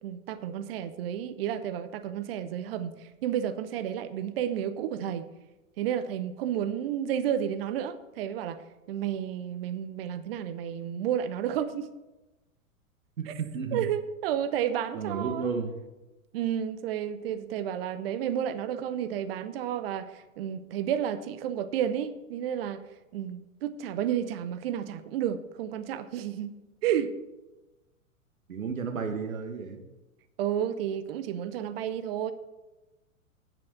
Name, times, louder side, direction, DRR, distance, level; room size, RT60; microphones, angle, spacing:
voice 1, 0.0-5.3 5.8-8.6 8.9-11.9 13.3-13.4 13.7-15.5 16.3-22.8 23.1-27.2 30.4-32.3, right 9 dB, 45° right, 12 dB, 0.8 m, -31 dB
voice 2, 13.2-13.9 14.9-15.7 28.5-29.8, right 5 dB, 70° right, 6 dB, 1.7 m, -32 dB
9.5 x 7.2 x 5.9 m, 1.1 s
figure-of-eight pair, 105°, 42 cm